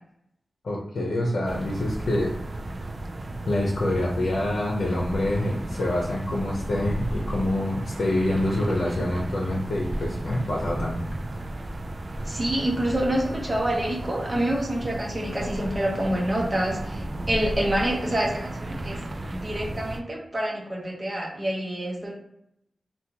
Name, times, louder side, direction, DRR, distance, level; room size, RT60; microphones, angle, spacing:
voice 1, 0.6-2.4 3.5-11.0, left 1 dB, 80° left, -3 dB, 0.7 m, -26 dB
sound 1, 1.5-20.0, right 1 dB, 40° right, 0.3 m, -34 dB
voice 2, 12.2-19.0 19.3-22.1, right 1 dB, 20° right, -3 dB, 1.0 m, -27 dB
3.5 x 2.4 x 2.9 m, 0.78 s
wide cardioid pair, 105°, 0 cm